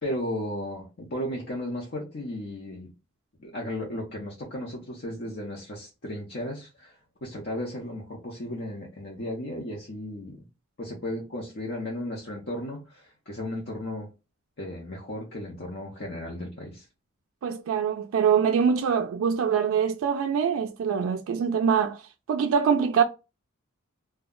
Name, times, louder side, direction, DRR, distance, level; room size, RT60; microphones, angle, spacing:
voice 1, 0.0-2.9 3.4-10.4 10.8-14.1 14.6-16.8, left 1 dB, 50° left, 0.7 m, -35 dB
voice 2, 17.4-22.0 22.3-23.0, right 7 dB, 75° right, 0.3 m, -24 dB
2.2 x 2.1 x 3.5 m
head